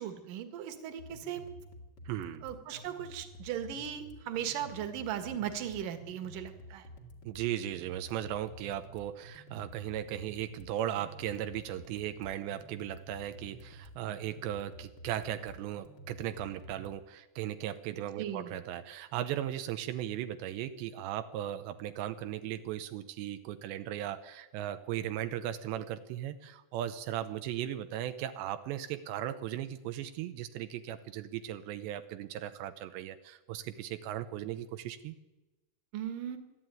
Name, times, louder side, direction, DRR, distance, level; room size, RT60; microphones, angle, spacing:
voice 1, 0.0-1.4 2.4-6.9 18.2-18.6 35.9-36.4, right 9 dB, 60° right, 8 dB, 3.0 m, -37 dB
sound 1, 1.0-17.0, equal, 35° left, 1.9 m, -51 dB
voice 2, 2.1-2.5 7.2-35.2, right 12 dB, 85° right, 10 dB, 3.1 m, -37 dB
26.5 x 11.5 x 9.2 m, 1.1 s
omnidirectional pair, 4.9 m